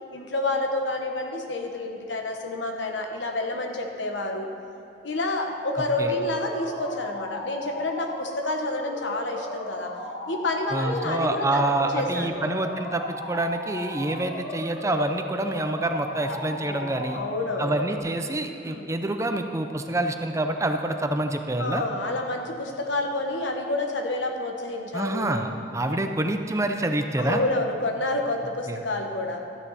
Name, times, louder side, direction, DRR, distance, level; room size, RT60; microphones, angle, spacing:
voice 1, 0.1-4.5 5.0-9.9 10.3-11.6 11.9-12.5 16.3-16.4 16.7-17.8 18.6-18.9 21.6-25.3 25.8-26.1 27.2-29.4, left 2 dB, 90° left, 3 dB, 1.2 m, -29 dB
sound 1, 6.0-18.0, left 1 dB, 70° left, 1.8 m, -36 dB
voice 2, 10.7-17.2 17.6-21.8 24.9-27.4 28.7-28.8, right 1 dB, 15° right, 6 dB, 0.5 m, -27 dB
13.0 x 9.5 x 4.2 m, 2.8 s
head